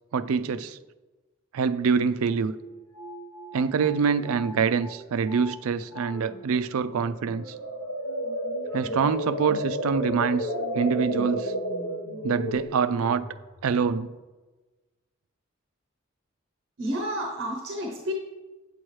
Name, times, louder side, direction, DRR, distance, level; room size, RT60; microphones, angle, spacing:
voice 1, 0.1-0.8 1.5-2.5 3.5-7.5 8.7-11.5 12.2-13.3 13.6-14.1, right 5 dB, 80° right, 13 dB, 0.4 m, -25 dB
sound 1, 2.5-5.0 5.3-5.6 5.9-6.4 6.9-13.8, equal, 90° left, 1.1 m, -33 dB
voice 2, 16.8-18.1, equal, 55° right, 0 dB, 0.9 m, -30 dB
8.8 x 7.6 x 3.2 m, 1.2 s
head